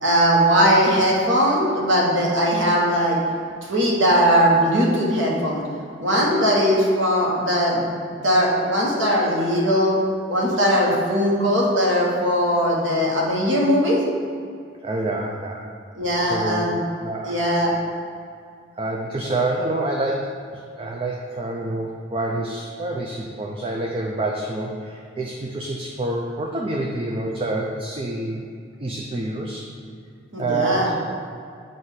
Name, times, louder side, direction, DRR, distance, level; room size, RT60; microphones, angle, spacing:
voice 1, 0.0-3.2 3.7-5.6 6.0-10.0 10.3-14.0 16.0-16.8 17.2-17.7 30.3-31.0, equal, 90° right, -3 dB, 1.3 m, -19 dB
voice 2, 14.8-15.6 16.2-16.7 17.0-17.4 18.8-28.4 28.8-29.6 30.4-30.9, right 2 dB, 30° right, -1 dB, 0.4 m, -27 dB
7.8 x 2.6 x 5.6 m, 2.3 s
head